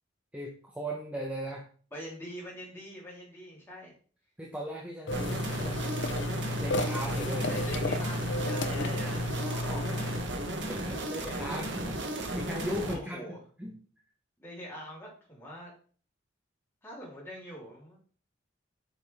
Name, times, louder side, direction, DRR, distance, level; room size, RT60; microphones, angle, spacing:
voice 1, 0.3-1.6 4.4-6.0 6.6-7.5 10.6-13.8, equal, 5° right, -2 dB, 1.2 m, -38 dB
voice 2, 1.9-3.9 7.5-10.2 11.4-11.9 12.9-13.4 14.4-15.7 16.8-18.0, equal, 10° left, -5 dB, 3.8 m, -44 dB
sound 1, 5.1-10.2, left 2 dB, 65° left, 0.7 m, -32 dB
sound 2, 5.1-12.9, right 1 dB, 65° right, 1.6 m, -35 dB
9.0 x 6.0 x 3.7 m, 0.43 s
head